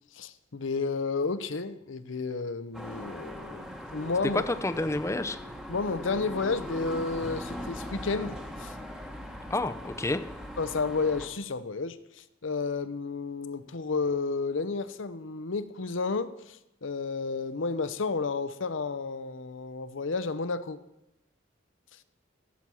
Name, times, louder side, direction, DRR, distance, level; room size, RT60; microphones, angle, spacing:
voice 1, 0.1-3.6 3.9-4.4 5.7-8.7 10.6-20.8, left 4 dB, 80° left, 12 dB, 0.8 m, -31 dB
sound 1, 2.7-11.3, equal, 5° right, 1.2 m, -40 dB
voice 2, 4.3-5.4 9.5-10.2, left 2 dB, 15° left, 10 dB, 0.6 m, -29 dB
15.5 x 7.1 x 6.2 m, 0.88 s
head